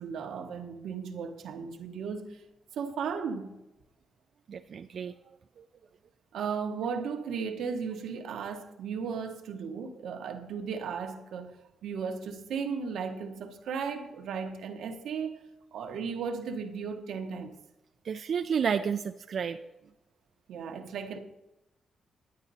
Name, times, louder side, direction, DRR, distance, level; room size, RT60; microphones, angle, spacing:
voice 1, 0.0-2.4 2.7-3.6 6.3-15.4 15.7-17.5 20.5-21.2, right 6 dB, 80° right, 1.1 m, -35 dB
voice 2, 4.5-5.1 18.1-19.6, right 7 dB, 50° right, 0.4 m, -30 dB
11.0 x 9.8 x 4.1 m
cardioid pair, 150°, 0 cm